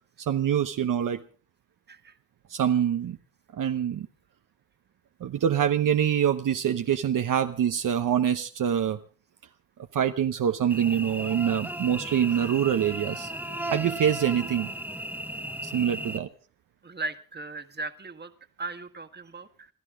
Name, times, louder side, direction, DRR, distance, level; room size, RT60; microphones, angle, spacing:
voice 1, 0.2-1.2 2.5-3.2 3.5-4.1 5.2-9.0 9.9-13.3 13.7-14.7 15.6-16.3, right 9 dB, 65° right, 7 dB, 0.9 m, -25 dB
Cricket / Buzz, 10.7-16.2, right 1 dB, 5° right, 1.4 m, -35 dB
voice 2, 16.8-18.3 18.6-19.7, right 2 dB, 30° right, 7 dB, 1.7 m, -37 dB
27.5 x 12.5 x 3.7 m, 0.38 s
cardioid pair, 105°, 34 cm